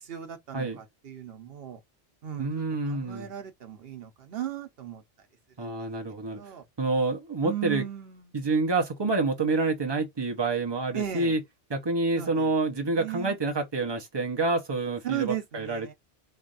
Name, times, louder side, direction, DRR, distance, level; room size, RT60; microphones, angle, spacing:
voice 1, 0.0-1.8 2.2-2.5 2.8-5.0 5.6-5.7 6.3-6.6 7.4-8.2 10.9-11.3 12.1-12.5 12.9-13.4 15.0-15.9, right 10 dB, 70° right, 1.1 m, -36 dB
voice 2, 2.4-3.3 5.6-6.4 6.8-7.8 8.3-11.4 11.7-15.9, right 3 dB, 25° right, 0.9 m, -28 dB
3.2 x 2.5 x 3.9 m
omnidirectional pair, 1.1 m